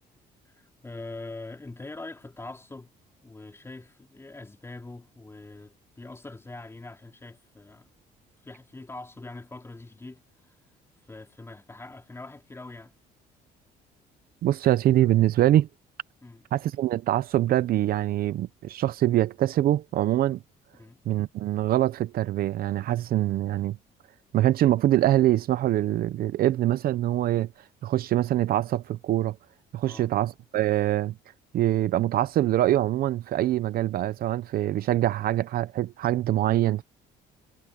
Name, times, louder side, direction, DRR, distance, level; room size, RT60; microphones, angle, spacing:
voice 1, 0.5-2.9 3.2-7.9 8.4-10.6 11.0-13.0 16.2-16.4 20.7-21.0 29.8-30.1, left 2 dB, 15° left, 3.7 m, -43 dB
voice 2, 14.4-15.7 16.5-20.4 21.1-23.8 24.3-27.5 27.8-29.4 29.7-31.1 31.5-36.8, right 13 dB, 60° right, 0.7 m, -24 dB
cardioid pair, 110°, 17 cm